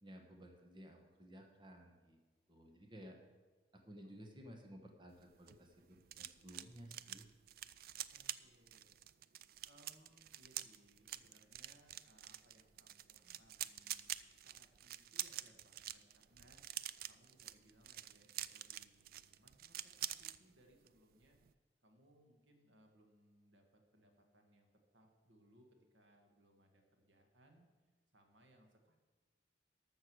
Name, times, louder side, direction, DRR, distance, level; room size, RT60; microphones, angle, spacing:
voice 1, 0.0-2.2 2.5-3.2 3.7-7.3, equal, 25° right, 3 dB, 1.1 m, -56 dB
voice 2, 4.0-4.4 8.1-9.1 9.6-21.4 21.8-24.7 24.9-27.7 28.1-29.0, right 1 dB, 90° right, 3 dB, 1.8 m, -69 dB
sound 1, 5.2-20.4 20.7-21.0 21.2-21.5, right 12 dB, 50° right, 0.3 m, -47 dB
13.0 x 6.5 x 6.2 m, 1.3 s
head